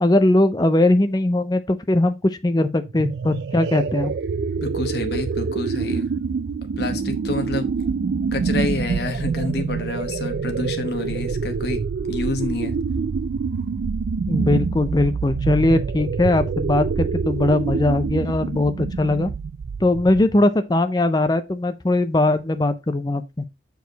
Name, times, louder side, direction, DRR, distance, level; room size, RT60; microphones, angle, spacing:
voice 1, 0.0-4.1 14.3-19.3 19.8-23.5, left 2 dB, 20° left, 0.5 m, -20 dB
sound 1, 2.8-20.4, right 5 dB, 65° right, 0.3 m, -26 dB
voice 2, 4.6-6.1 6.8-7.7 8.3-11.8 12.1-12.7, left 2 dB, 60° left, 1.1 m, -28 dB
6.4 x 4.7 x 3.9 m
head